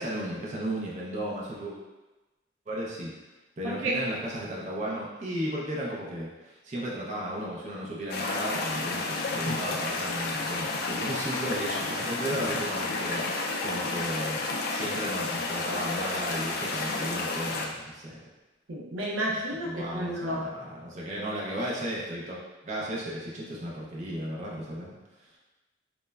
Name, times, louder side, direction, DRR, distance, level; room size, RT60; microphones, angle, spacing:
voice 1, 0.0-1.8 2.7-3.1 3.6-14.4 14.7-18.2 19.6-25.0, right 1 dB, 40° right, -4 dB, 0.5 m, -35 dB
voice 2, 3.6-4.0 18.7-20.4, right 1 dB, 90° right, -3 dB, 0.5 m, -31 dB
sound 1, 8.1-17.7, left 3 dB, 55° left, 0.3 m, -31 dB
3.0 x 2.1 x 2.2 m, 1.1 s
head